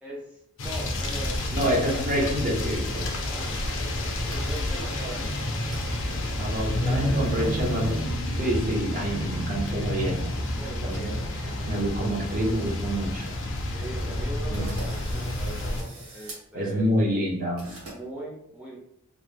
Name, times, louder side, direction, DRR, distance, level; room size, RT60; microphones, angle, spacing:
voice 1, 0.0-2.1 2.5-2.6 3.2-4.0 4.3-5.3 6.8-7.7 10.6-11.9 13.7-16.9 17.8-18.8, right 2 dB, 5° right, -5 dB, 0.4 m, -40 dB
sound 1, 0.6-15.8, left 1 dB, 60° left, 0.5 m, -29 dB
voice 2, 1.5-3.1 6.4-7.9 8.4-10.4 10.8-11.0 11.7-13.3 14.5-14.6 16.5-17.8, equal, 40° right, -1 dB, 0.7 m, -27 dB
sound 2, 1.5-2.1 2.3-2.9 3.2-3.3 3.7-4.6 5.0-5.1 5.7-5.9 6.1-6.3 6.9-7.5 8.7-9.8 10.4-11.4 11.7-11.9 12.4-12.5 12.8-12.9 13.1-13.3 13.8-13.9 14.5-16.4 17.6-18.0, right 2 dB, 70° right, 1.0 m, -45 dB
sound 3, 2.9-8.0, right 3 dB, 85° right, 1.3 m, -47 dB
2.9 x 2.1 x 3.2 m, 0.75 s
head